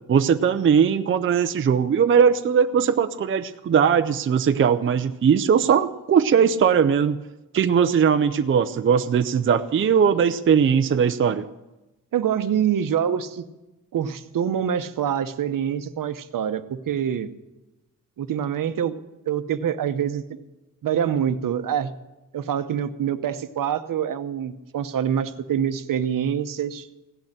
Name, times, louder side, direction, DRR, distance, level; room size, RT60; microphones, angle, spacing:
voice 1, 0.1-7.2 7.5-11.5, right 7 dB, 40° right, 9 dB, 0.5 m, -19 dB
voice 2, 12.1-13.4 13.9-17.3 18.2-20.2 20.8-21.9 22.3-26.9, right 9 dB, 70° right, 10 dB, 0.9 m, -25 dB
16.5 x 6.6 x 9.9 m, 1.0 s
wide cardioid pair, 160°, 34 cm